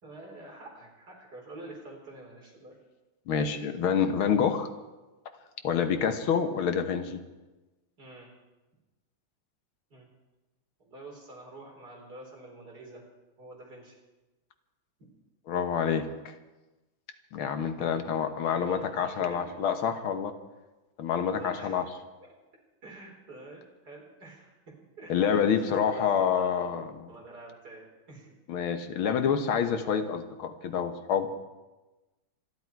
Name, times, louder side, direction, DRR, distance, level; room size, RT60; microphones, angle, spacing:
voice 1, 0.0-2.8 8.0-8.3 9.9-10.1 10.8-13.0 13.4-14.0 15.0-15.1 17.8-19.5 21.3-21.9 22.2-22.3 22.8-28.4, right 2 dB, 50° right, -1 dB, 4.5 m, -47 dB
voice 2, 3.3-4.7 5.6-7.2 15.5-16.3 17.3-20.3 21.0-21.8 25.1-26.9 28.5-31.3, left 7 dB, 90° left, 8 dB, 2.1 m, -27 dB
27.0 x 11.5 x 4.7 m, 1.1 s
omnidirectional pair, 2.2 m